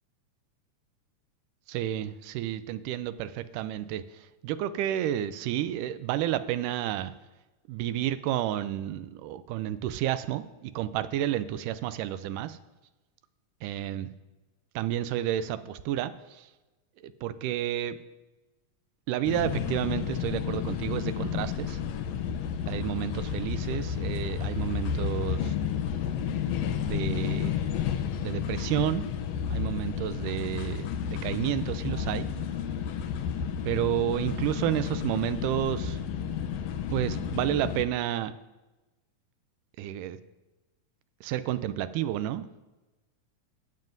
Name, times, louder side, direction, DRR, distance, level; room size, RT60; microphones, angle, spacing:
voice 1, 1.7-7.1 7.7-12.6 13.6-14.1 14.8-16.5 17.0-18.0 19.1-21.8 22.7-25.6 26.8-27.6 28.2-29.0 29.5-32.3 33.6-36.0 36.9-38.3 39.8-40.2 41.2-42.5, right 12 dB, 90° right, 13 dB, 2.1 m, -31 dB
sound 1, 19.2-37.9, left 8 dB, 80° left, 1.5 m, -31 dB
18.5 x 7.5 x 2.6 m, 1.1 s
omnidirectional pair, 3.6 m